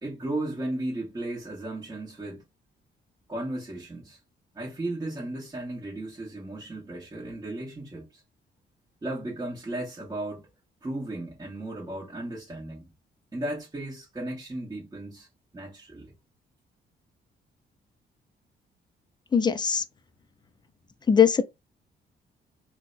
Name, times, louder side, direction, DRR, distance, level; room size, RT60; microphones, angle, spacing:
voice 1, 0.0-2.4 3.3-4.2 4.5-8.2 9.0-10.4 10.8-12.9 13.3-15.3 15.5-16.1, right 1 dB, 20° right, 1.4 m, -35 dB
voice 2, 19.3-19.8 21.1-21.4, left 7 dB, 25° left, 0.4 m, -20 dB
3.9 x 2.2 x 2.5 m
cardioid pair, 110°, 19 cm